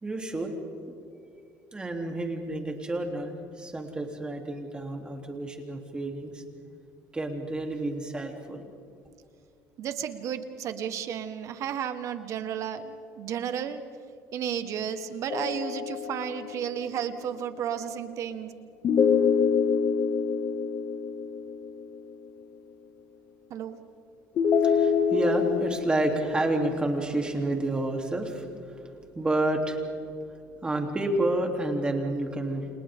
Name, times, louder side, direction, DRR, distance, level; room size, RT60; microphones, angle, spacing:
voice 1, 0.0-0.5 1.7-6.4 7.1-8.7 24.6-29.9 30.6-32.7, right 1 dB, 15° right, 2 dB, 3.4 m, -30 dB
voice 2, 9.8-13.8 14.3-18.5 23.5-23.8, right 8 dB, 55° right, 9 dB, 1.6 m, -33 dB
sound 1, 15.3-16.8 18.8-22.0 24.4-25.7, left 6 dB, 50° left, 2.1 m, -25 dB
30.0 x 29.0 x 3.8 m, 2.4 s
cardioid pair, 125°, 6 cm